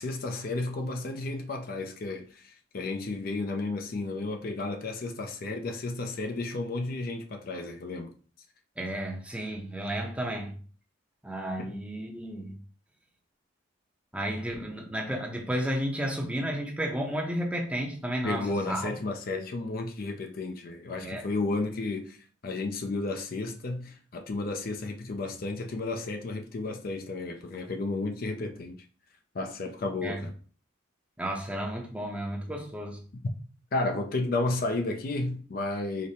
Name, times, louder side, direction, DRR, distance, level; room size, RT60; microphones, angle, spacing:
voice 1, 0.0-8.1 11.6-11.7 18.2-22.2 22.4-28.8 29.3-30.4 33.7-36.1, left 2 dB, 45° left, 0.4 m, -32 dB
voice 2, 8.8-10.6 11.2-12.6 14.1-18.9 21.0-21.3 30.0-30.2 31.2-33.0, right 1 dB, 5° right, 0.7 m, -32 dB
5.0 x 2.1 x 4.2 m
head